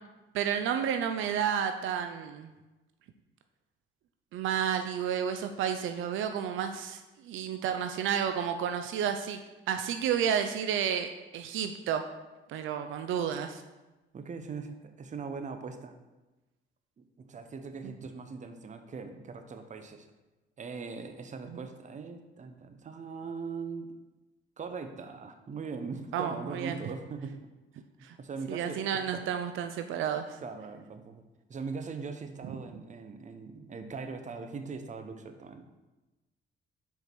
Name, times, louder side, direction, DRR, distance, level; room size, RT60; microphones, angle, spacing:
voice 1, 0.3-2.5 4.3-9.4 9.7-12.0 12.5-13.6 17.8-17.9 21.5-21.6 26.1-26.8 28.0-28.2 28.5-30.4 32.5-32.6, right 8 dB, 80° right, 7 dB, 0.5 m, -31 dB
voice 2, 14.1-15.9 17.0-20.1 20.6-24.0 24.6-27.4 28.2-28.9 29.1-29.2 30.4-31.2 31.5-35.7, right 4 dB, 40° right, 7 dB, 0.8 m, -40 dB
5.4 x 4.7 x 5.9 m, 1.1 s
cardioid pair, 90°, 20 cm